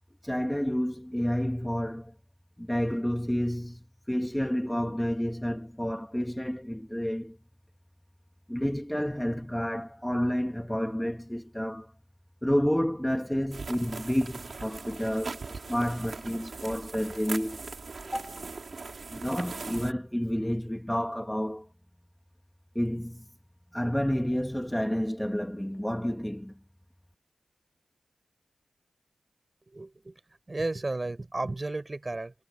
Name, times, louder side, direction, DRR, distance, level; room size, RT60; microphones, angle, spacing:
voice 1, 0.2-2.1 2.6-7.4 8.5-11.9 12.4-17.6 18.0-18.4 19.1-21.7 22.7-23.3 23.7-26.6, equal, 5° left, 2.3 m, -30 dB
sound 1, 13.5-19.9, right 4 dB, 65° right, 4.5 m, -40 dB
voice 2, 29.7-30.2 30.5-32.3, right 2 dB, 35° right, 6.6 m, -33 dB
cardioid pair, 45°, 0 cm